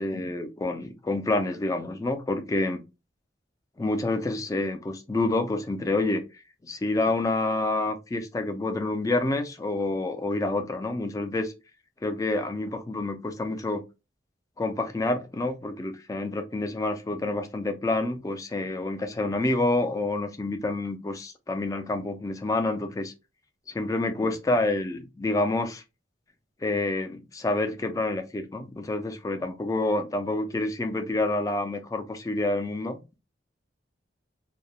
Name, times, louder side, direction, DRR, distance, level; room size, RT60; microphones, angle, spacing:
voice 1, 0.0-2.8 3.8-6.2 6.6-11.5 12.0-13.8 14.6-23.1 23.7-25.8 26.6-33.0, left 2 dB, 20° left, 7 dB, 0.3 m, -28 dB
2.2 x 2.0 x 2.9 m, 0.27 s
head